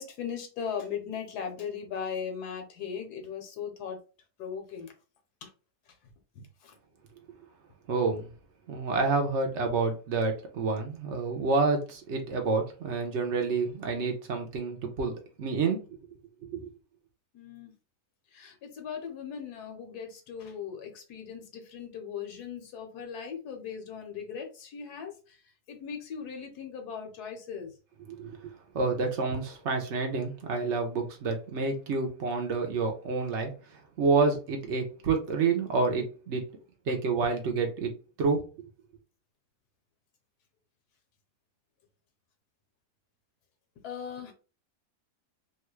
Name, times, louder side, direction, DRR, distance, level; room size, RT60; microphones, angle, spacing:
voice 1, 0.0-4.0 4.4-4.9 5.4-5.5 6.4-6.7 17.3-17.7 18.3-25.1 25.7-27.7 36.9-37.0 43.8-44.3, left 7 dB, 85° left, 1.3 m, -38 dB
voice 2, 7.9-8.3 8.7-15.1 15.4-15.8 16.5-16.7 28.1-28.4 28.7-33.5 34.0-36.4 36.9-37.9 38.2-38.4, right 4 dB, 60° right, 0.9 m, -28 dB
3.1 x 2.3 x 3.0 m
omnidirectional pair, 1.6 m